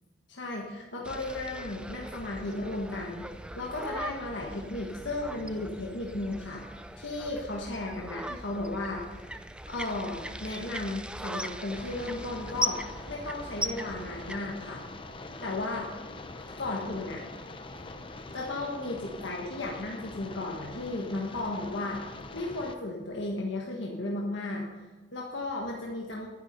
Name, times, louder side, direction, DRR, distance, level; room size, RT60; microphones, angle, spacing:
voice 1, 0.3-3.3 3.5-9.3 9.6-12.8 13.1-14.8 15.4-15.9 16.6-17.2 18.3-22.0 22.3-26.3, left 2 dB, 90° left, -2 dB, 1.6 m, -35 dB
sound 1, 1.0-14.4, right 1 dB, 5° right, 0.5 m, -39 dB
sound 2, 11.7-22.8, left 2 dB, 30° left, 0.8 m, -44 dB
11.5 x 10.5 x 5.5 m, 1.4 s
head